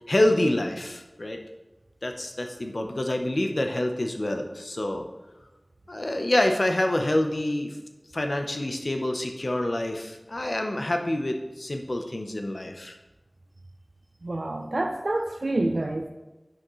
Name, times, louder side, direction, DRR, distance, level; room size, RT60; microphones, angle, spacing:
voice 1, 0.1-1.4 2.0-5.1 5.9-7.8 8.1-13.0, left 1 dB, 70° left, 4 dB, 0.7 m, -27 dB
voice 2, 14.2-16.1, right 2 dB, 80° right, 3 dB, 0.4 m, -27 dB
9.1 x 6.1 x 3.1 m, 1.1 s
wide cardioid pair, 45°, 0 cm